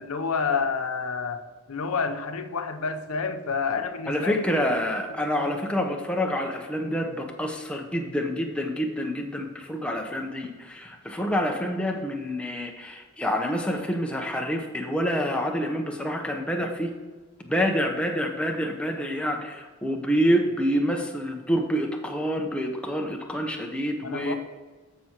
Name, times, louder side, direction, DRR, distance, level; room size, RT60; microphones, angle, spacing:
voice 1, 0.0-1.4 1.7-4.8 5.3-5.6 24.0-24.3, left 5 dB, 90° left, 0.6 m, -29 dB
voice 2, 4.1-16.9 17.4-24.3, equal, 5° left, 0.7 m, -27 dB
14.0 x 5.9 x 2.9 m
head